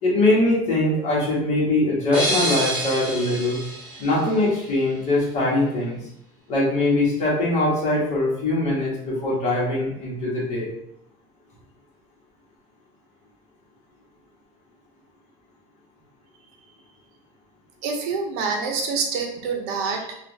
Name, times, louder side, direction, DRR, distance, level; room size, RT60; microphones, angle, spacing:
voice 1, 0.0-3.6 4.0-6.0 6.5-10.7, left 2 dB, 40° left, -6 dB, 1.5 m, -22 dB
sound 1, 2.1-4.9, equal, 5° right, 1.3 m, -28 dB
voice 2, 17.8-20.2, right 5 dB, 70° right, 2 dB, 0.7 m, -26 dB
3.5 x 2.5 x 3.2 m, 0.77 s
cardioid pair, 160°, 17 cm